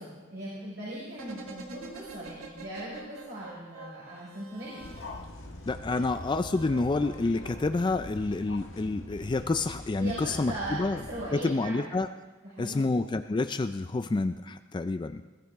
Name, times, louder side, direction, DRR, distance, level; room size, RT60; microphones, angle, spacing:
voice 1, 0.0-4.8 5.9-6.0 10.0-11.9 12.4-12.8, right 1 dB, 50° right, -7 dB, 4.7 m, -39 dB
sound 1, 1.1-5.6 6.4-8.2 8.5-8.6, right 3 dB, 75° right, 1.7 m, -47 dB
sound 2, 4.8-11.3, left 1 dB, 70° left, 1.6 m, -43 dB
voice 2, 5.7-11.0 11.3-12.1 12.6-15.2, left 3 dB, 20° left, 9 dB, 0.3 m, -28 dB
21.0 x 13.0 x 3.5 m, 1.3 s
head